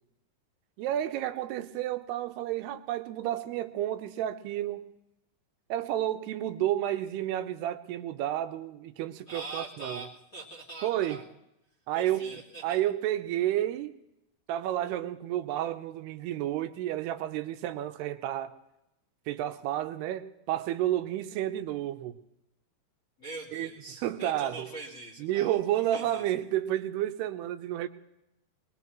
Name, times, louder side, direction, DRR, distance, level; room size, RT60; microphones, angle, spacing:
voice 1, 0.8-4.9 5.7-10.1 10.8-11.2 11.9-13.9 14.5-18.5 19.3-22.2 23.5-23.7 24.0-24.7 25.2-27.9, right 12 dB, 80° right, 2.7 m, -31 dB
voice 2, 9.3-11.2 11.9-12.8 23.2-26.2, right 3 dB, 25° left, 2.1 m, -43 dB
22.0 x 21.0 x 3.1 m
omnidirectional pair, 4.7 m